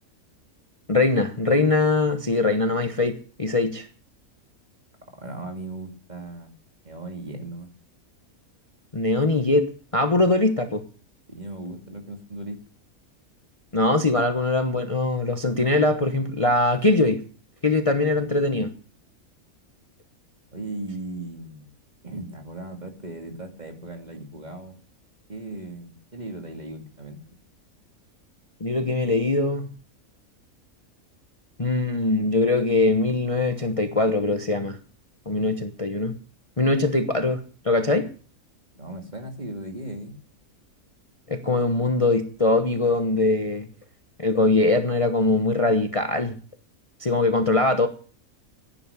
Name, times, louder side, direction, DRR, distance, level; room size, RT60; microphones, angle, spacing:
voice 1, 0.9-3.9 8.9-10.8 13.7-17.2 17.6-18.7 28.6-29.7 31.6-34.8 35.3-36.1 36.6-38.1 41.3-43.7 44.2-46.4 47.0-47.9, left 2 dB, 25° left, 7 dB, 1.1 m, -22 dB
voice 2, 5.2-6.5 6.8-7.7 11.3-12.6 18.1-18.5 20.5-21.7 22.0-24.8 25.3-27.2 38.8-40.2, right 2 dB, 30° right, 5 dB, 2.5 m, -37 dB
15.5 x 10.5 x 7.0 m, 0.41 s
omnidirectional pair, 1.5 m